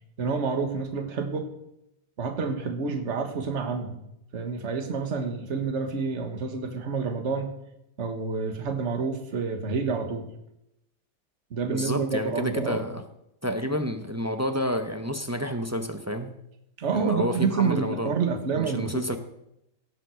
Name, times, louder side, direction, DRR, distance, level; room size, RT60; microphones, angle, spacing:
voice 1, 0.2-1.5 2.2-4.0 4.3-7.5 8.0-10.3 11.5-12.9 16.8-19.2, right 5 dB, 45° right, 6 dB, 1.8 m, -28 dB
voice 2, 11.7-13.0 13.4-16.3 16.9-18.1 18.6-19.2, equal, 15° right, 6 dB, 0.7 m, -29 dB
18.0 x 7.5 x 6.4 m, 0.83 s
omnidirectional pair, 1.9 m